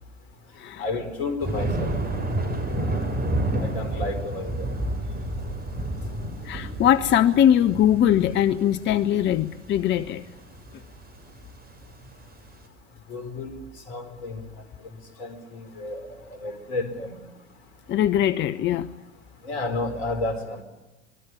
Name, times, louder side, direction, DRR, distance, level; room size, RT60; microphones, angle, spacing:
voice 1, 0.8-2.0 3.6-4.7 13.1-13.6 13.9-14.4 15.2-16.1 16.4-17.1 19.4-20.6, left 2 dB, 65° left, 11 dB, 4.7 m, -31 dB
Thunder, 1.4-12.5, right 1 dB, 25° right, 6.7 m, -30 dB
voice 2, 6.4-10.2 17.9-18.9, left 10 dB, 30° left, 12 dB, 0.9 m, -21 dB
25.5 x 21.5 x 10.0 m, 1.0 s
figure-of-eight pair, 80°, 34 cm